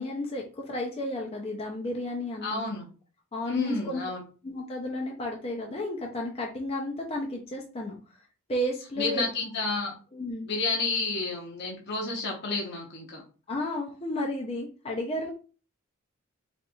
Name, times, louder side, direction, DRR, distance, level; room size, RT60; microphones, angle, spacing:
voice 1, 0.0-2.7 3.3-4.0 4.4-8.0 8.5-9.2 10.1-10.5 13.5-15.3, left 1 dB, 25° left, 0 dB, 0.5 m, -32 dB
voice 2, 2.4-2.9 3.5-4.2 9.0-10.0 10.4-13.2, left 3 dB, 50° left, 0 dB, 0.8 m, -30 dB
4.3 x 2.5 x 2.3 m, 0.37 s
head